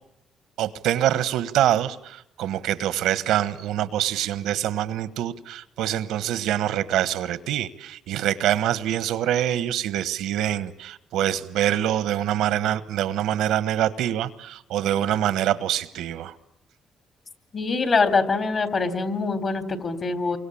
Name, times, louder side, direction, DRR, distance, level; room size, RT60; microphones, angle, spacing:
voice 1, 0.6-16.3, right 12 dB, 90° right, 15 dB, 1.3 m, -25 dB
voice 2, 17.5-20.4, left 4 dB, 45° left, 11 dB, 3.5 m, -24 dB
29.0 x 24.0 x 8.7 m, 0.79 s
cardioid pair, 90°, 0 cm